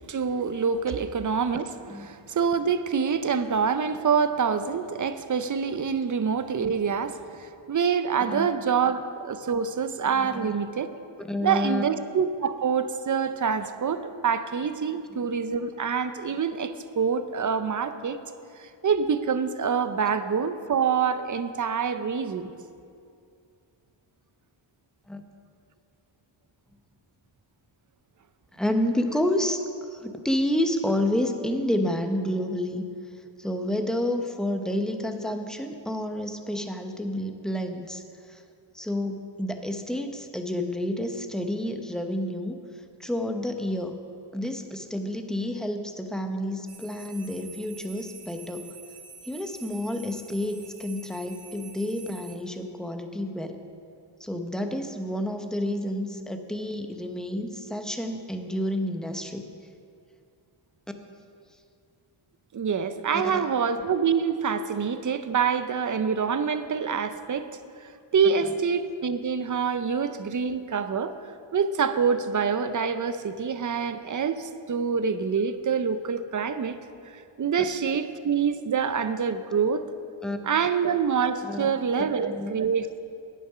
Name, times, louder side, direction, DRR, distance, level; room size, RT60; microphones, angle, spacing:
voice 1, 0.1-10.9 11.4-18.2 18.6-22.5 62.5-67.5 68.1-71.1 71.5-76.8 77.1-79.8 80.4-83.0, right 6 dB, 40° right, 11 dB, 0.6 m, -26 dB
voice 2, 10.2-10.5 11.2-11.8 25.1-25.2 28.5-29.6 29.9-32.8 33.4-38.0 38.3-38.4 38.7-42.6 43.0-44.0 44.3-48.6 49.3-53.6 54.2-59.5 63.1-63.4 77.6-77.7 80.2-80.4 81.4-81.7 82.2-82.5, left 1 dB, ahead, 5 dB, 0.8 m, -29 dB
sound 1, 46.7-52.4, right 4 dB, 85° right, 1.3 m, -47 dB
10.5 x 8.7 x 5.6 m, 2.4 s
wide cardioid pair, 75°, 49 cm